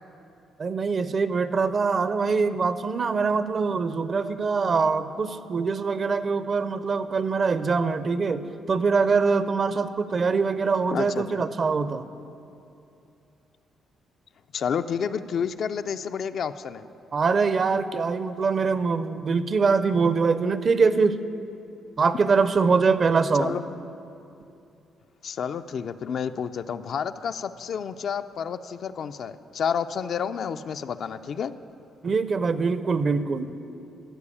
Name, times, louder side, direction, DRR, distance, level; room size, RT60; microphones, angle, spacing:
voice 1, 0.6-12.1 17.1-21.2 22.0-23.5 32.0-33.5, right 4 dB, 45° right, 13 dB, 0.5 m, -23 dB
voice 2, 10.9-11.4 14.5-16.8 23.4-23.6 25.2-31.5, left 7 dB, 60° left, 10 dB, 0.4 m, -30 dB
13.5 x 4.8 x 8.4 m, 2.7 s
cardioid pair, 90°, 0 cm